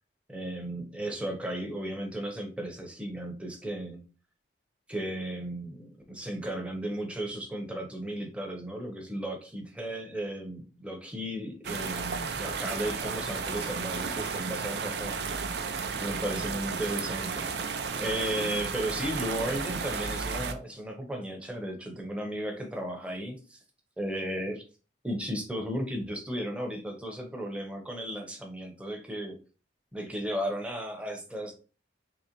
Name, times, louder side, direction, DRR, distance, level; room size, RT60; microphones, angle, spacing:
voice 1, 0.3-4.1 4.9-15.2 16.0-17.5 18.0-23.6 24.0-24.6 25.0-29.4 29.9-31.5, right 1 dB, 5° right, 2 dB, 0.7 m, -35 dB
sound 1, 11.6-20.5, right 5 dB, 65° right, 0.4 m, -33 dB
3.9 x 3.0 x 3.0 m, 0.35 s
head